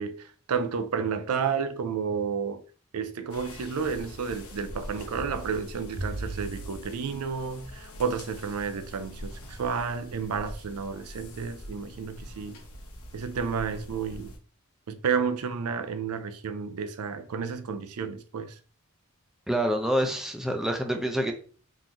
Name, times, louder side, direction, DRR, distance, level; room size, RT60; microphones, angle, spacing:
voice 1, 0.0-2.6 2.9-12.6 13.1-14.3 14.9-18.5, right 6 dB, 90° right, 0.5 m, -31 dB
sound 1, 3.3-14.4, equal, 85° left, 0.9 m, -42 dB
voice 2, 19.5-21.3, equal, ahead, 0.4 m, -27 dB
3.8 x 3.0 x 2.6 m
head